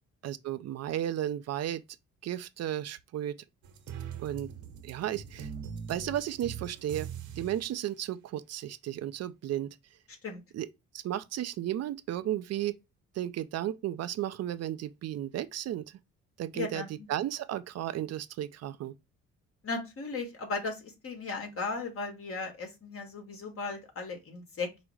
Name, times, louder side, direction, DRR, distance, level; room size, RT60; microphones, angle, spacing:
voice 1, 0.2-1.8 2.2-3.4 4.2-4.5 4.8-5.5 5.9-7.1 7.4-9.8 10.5-10.7 11.0-12.8 13.2-15.9 16.4-16.8 17.1-18.9, right 12 dB, 55° right, 0.4 m, -34 dB
sound 1, 3.6-7.7, right 6 dB, 75° right, 1.0 m, -42 dB
voice 2, 16.5-17.1 19.6-24.7, left 3 dB, 45° left, 1.5 m, -36 dB
4.7 x 2.0 x 4.6 m
cardioid pair, 90°, 30 cm